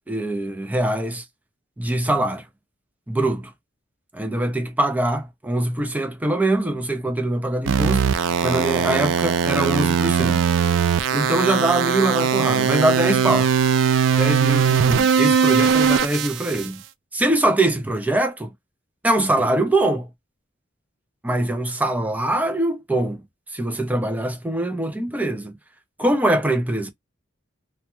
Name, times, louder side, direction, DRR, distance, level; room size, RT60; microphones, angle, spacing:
voice 1, 0.1-1.2 1.8-2.4 3.1-3.5 4.1-10.4 11.1-13.5 14.2-16.8 17.1-18.5 19.0-20.1 21.2-23.2 23.5-25.6 26.0-26.9, right 1 dB, 10° right, 0.4 m, -23 dB
sound 1, 7.7-16.7, right 7 dB, 75° right, 0.3 m, -20 dB
2.3 x 2.0 x 2.8 m
head